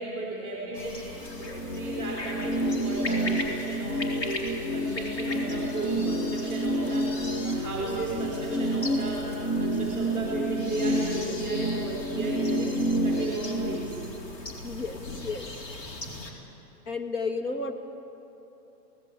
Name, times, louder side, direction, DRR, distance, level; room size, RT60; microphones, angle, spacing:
voice 1, 0.0-14.0 15.9-16.2, right 2 dB, 10° left, -4 dB, 4.2 m, -35 dB
sound 1, 0.7-16.3, left 2 dB, 80° left, 4.3 m, -39 dB
sound 2, 1.2-13.8, right 1 dB, 35° left, 0.9 m, -29 dB
voice 2, 14.6-15.5 16.9-17.7, left 4 dB, 65° left, 5 dB, 2.4 m, -32 dB
25.5 x 18.5 x 8.4 m, 2.9 s
hypercardioid pair, 175°, 49 cm